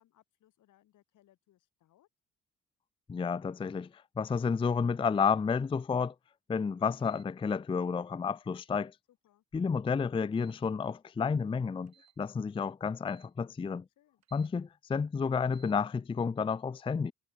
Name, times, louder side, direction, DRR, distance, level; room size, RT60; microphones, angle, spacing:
voice 1, 0.0-2.1 9.1-9.4 14.0-14.2, left 13 dB, 80° left, 7.4 m, -67 dB
voice 2, 3.1-6.1 6.5-8.9 9.5-13.8 14.3-17.1, left 5 dB, 20° left, 0.4 m, -31 dB
sound 1, 5.1-5.4 7.0-7.3 8.6-8.9 10.3-10.7 11.9-12.2 13.0-13.3 14.2-14.5 15.4-15.8, right 9 dB, 60° right, 6.4 m, -65 dB
cardioid pair, 90°, 30 cm